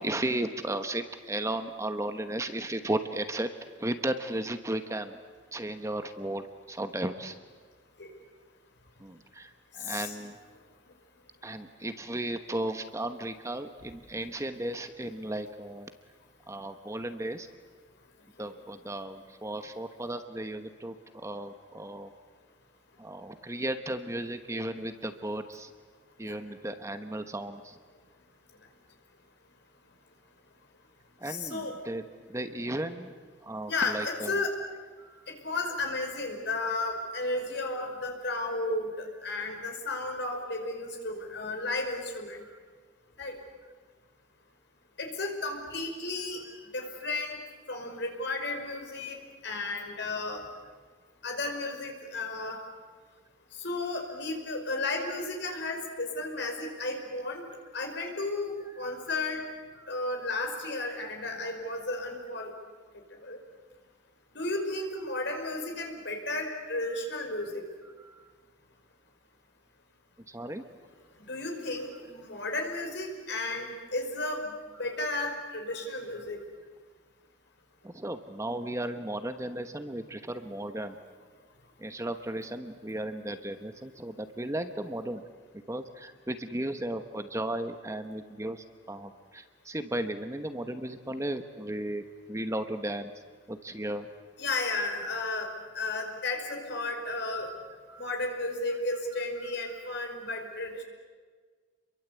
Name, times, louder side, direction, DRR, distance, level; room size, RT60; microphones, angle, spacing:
voice 1, 0.0-3.5 3.8-5.2 5.5-7.3 9.0-10.4 11.4-15.9 16.5-17.5 18.4-22.1 23.0-25.7 26.2-27.7 31.2-32.0 32.3-33.1 33.4-34.3 35.0-35.2 39.3-39.4 59.8-59.9 68.0-68.3 70.3-70.6 77.8-80.9 81.8-85.2 85.7-92.0 92.3-93.1 93.5-94.1 97.9-98.1, right 1 dB, 15° right, 8 dB, 1.1 m, -35 dB
voice 2, 9.9-10.3 26.2-26.3 31.2-31.8 33.7-34.5 35.3-42.4 43.2-43.4 45.0-46.4 46.7-47.4 47.7-49.2 49.4-50.4 51.2-52.6 53.6-57.4 57.7-59.4 59.9-62.5 63.2-63.4 64.3-67.6 71.3-74.5 74.8-76.4 94.4-95.5 95.7-97.5 98.0-100.8, left 2 dB, 65° left, 3 dB, 5.1 m, -33 dB
29.5 x 23.0 x 8.3 m, 1.5 s
head